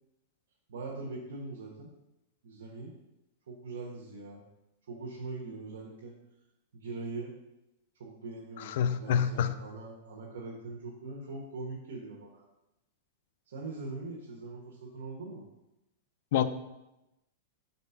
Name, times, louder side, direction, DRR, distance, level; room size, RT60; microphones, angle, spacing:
voice 1, 0.7-1.9 2.4-2.9 3.5-4.4 4.9-6.2 6.7-7.3 8.0-12.5 13.5-15.4, right 3 dB, 90° right, -2 dB, 1.0 m, -42 dB
voice 2, 8.7-9.5 16.3-16.4, left 9 dB, 55° left, 12 dB, 0.4 m, -27 dB
4.2 x 4.1 x 5.6 m, 0.93 s
supercardioid pair, 160°, 0 cm